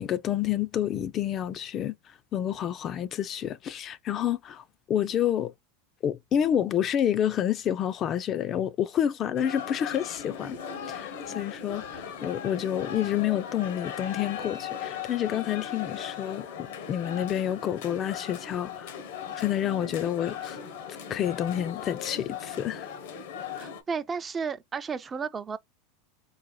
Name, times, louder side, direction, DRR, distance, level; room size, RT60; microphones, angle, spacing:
voice 1, 0.0-1.9 2.3-5.5 6.0-10.6 10.9-19.0 19.4-20.6 21.1-22.9, left 10 dB, 40° left, 0.4 m, -29 dB
sound 1, 9.3-23.8, left 7 dB, 70° left, 0.7 m, -38 dB
voice 2, 23.6-25.6, right 5 dB, 25° right, 0.4 m, -33 dB
4.0 x 2.0 x 3.0 m
hypercardioid pair, 90°, 0 cm